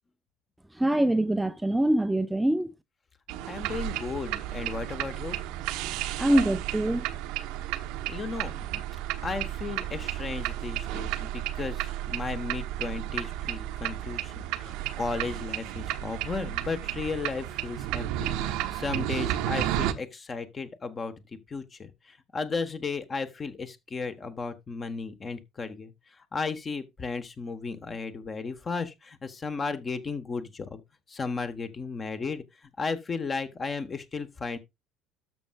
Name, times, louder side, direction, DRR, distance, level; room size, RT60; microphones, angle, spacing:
voice 1, 0.8-2.7 6.2-7.1, right 1 dB, 5° right, 0.5 m, -24 dB
sound 1, 3.3-19.9, right 13 dB, 60° right, 0.8 m, -32 dB
voice 2, 3.5-5.4 8.1-8.8 9.2-14.3 14.6-21.1 21.5-21.9 22.3-25.9 26.3-30.8 31.1-32.4 32.8-34.6, left 4 dB, 30° left, 1.3 m, -34 dB
13.0 x 6.2 x 2.4 m
figure-of-eight pair, 60°, 0 cm